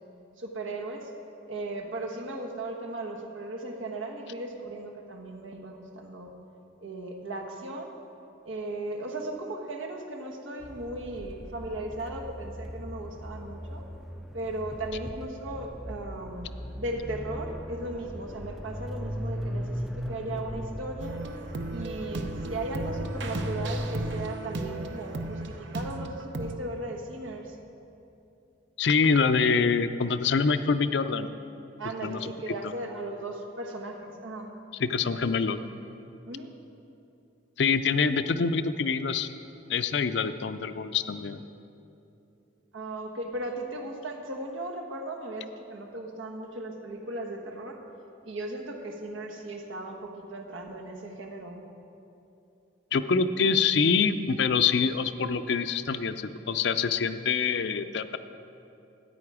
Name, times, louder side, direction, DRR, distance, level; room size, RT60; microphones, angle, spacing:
voice 1, 0.4-1.1 1.5-6.3 6.8-8.0 8.4-13.8 14.3-21.2 21.7-27.6 31.8-34.6 36.2-36.5 42.7-47.8 48.2-51.7, right 2 dB, 85° right, 3 dB, 1.3 m, -37 dB
sound 1, 10.6-24.3, equal, ahead, 0.3 m, -38 dB
sound 2, 21.0-26.5, right 2 dB, 65° right, 0.8 m, -36 dB
voice 2, 28.8-31.3 32.0-32.3 32.6-32.7 34.8-35.6 37.6-39.3 39.7-41.4 52.9-58.2, left 5 dB, 65° left, 11 dB, 0.5 m, -25 dB
13.5 x 9.5 x 4.8 m, 2.8 s
head